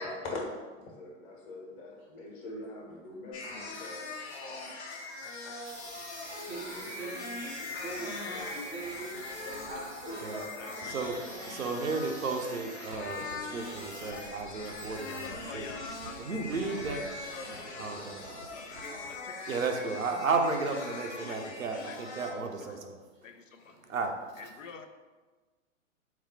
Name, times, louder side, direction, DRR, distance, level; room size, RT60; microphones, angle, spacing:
voice 1, 0.0-4.1 6.7-7.1 7.7-7.8 8.3-8.5 9.4-9.7 10.0-10.8 11.4-11.9 13.4-13.6 14.1-14.3 15.1-15.5, left 2 dB, 35° left, -2 dB, 1.1 m, -43 dB
Singing alien, 3.3-22.3, left 3 dB, 55° left, 0.9 m, -41 dB
sound 1, 5.6-19.3, right 5 dB, 45° right, 0.5 m, -50 dB
voice 2, 6.5-7.3 7.7-9.2 9.7-10.7 23.6-24.0, right 3 dB, 5° left, -10 dB, 0.4 m, -42 dB
voice 3, 10.3-11.1 15.1-16.2 16.7-19.4 19.8-19.9 20.7-20.8 21.2-22.0 22.3-22.8 23.2-23.8 24.4-24.9, left 6 dB, 75° left, 7 dB, 0.5 m, -48 dB
voice 4, 10.8-11.2 11.5-15.7 16.2-17.1 17.7-18.2 19.5-23.0 23.9-24.4, right 4 dB, 90° right, 3 dB, 0.6 m, -33 dB
4.1 x 2.1 x 4.1 m, 1.3 s
figure-of-eight pair, 110°, 39 cm